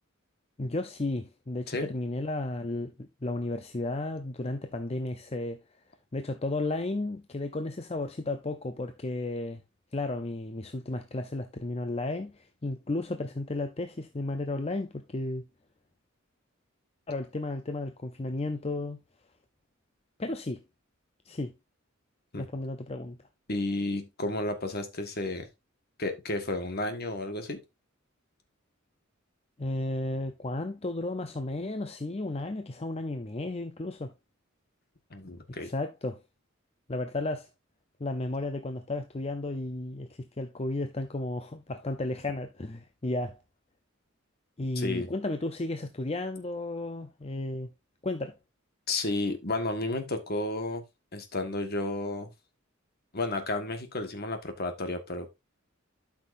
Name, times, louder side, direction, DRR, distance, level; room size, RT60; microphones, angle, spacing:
voice 1, 0.6-5.6 6.1-9.6 9.9-15.4 17.1-19.0 20.2-20.6 21.3-21.5 22.4-23.2 29.6-34.1 35.6-36.2 36.9-37.5 38.0-43.4 44.6-47.7 48.0-48.3, left 2 dB, 30° left, 0.6 m, -33 dB
voice 2, 23.5-25.5 26.0-27.6 35.1-35.7 44.7-45.1 48.9-50.8 51.1-52.3 53.1-55.4, left 2 dB, 50° left, 1.6 m, -32 dB
12.5 x 5.8 x 2.6 m
head